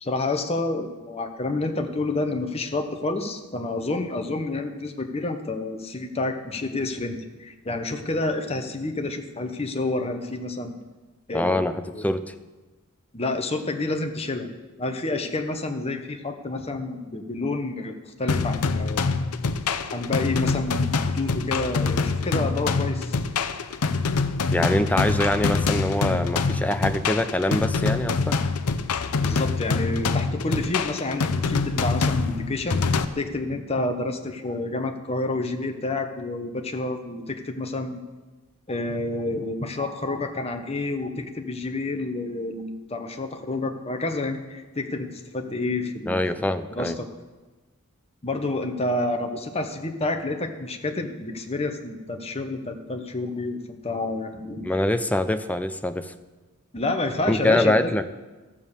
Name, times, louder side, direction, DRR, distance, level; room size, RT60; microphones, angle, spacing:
voice 1, 0.0-10.8 11.3-12.0 13.1-14.5 14.8-19.0 19.9-23.2 29.2-32.8 33.2-38.0 38.7-47.1 48.2-54.6 56.7-57.9, left 2 dB, 30° left, 5 dB, 1.0 m, -29 dB
voice 2, 11.3-12.3 24.5-28.4 46.1-47.0 54.6-56.1 57.3-58.0, left 1 dB, 5° left, 10 dB, 0.5 m, -24 dB
sound 1, 18.3-33.1, left 4 dB, 90° left, 0.6 m, -25 dB
13.0 x 7.3 x 6.6 m, 1.2 s
head